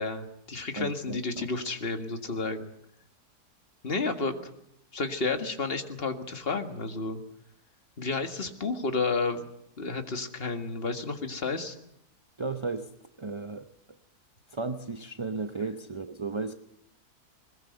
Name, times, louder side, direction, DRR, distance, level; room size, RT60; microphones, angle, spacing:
voice 1, 0.0-2.7 3.8-4.4 4.9-7.2 8.0-9.4 9.8-11.8, left 3 dB, 35° left, 7 dB, 2.0 m, -31 dB
voice 2, 0.8-1.5 12.4-12.9 13.2-13.7 14.5-16.6, right 3 dB, 25° right, 9 dB, 0.6 m, -34 dB
21.0 x 21.0 x 8.1 m, 0.79 s
omnidirectional pair, 1.7 m